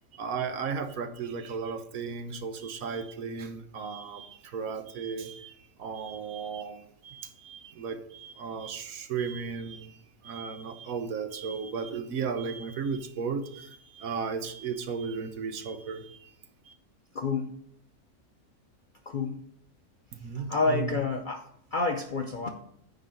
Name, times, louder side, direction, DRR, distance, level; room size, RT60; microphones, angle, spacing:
voice 1, 0.1-16.3 16.6-16.7 20.1-21.0, right 6 dB, 70° right, 8 dB, 1.2 m, -35 dB
voice 2, 17.1-17.5 19.1-19.4 20.3-22.5, left 4 dB, 55° left, 4 dB, 0.5 m, -29 dB
9.6 x 3.9 x 6.4 m, 0.70 s
omnidirectional pair, 1.6 m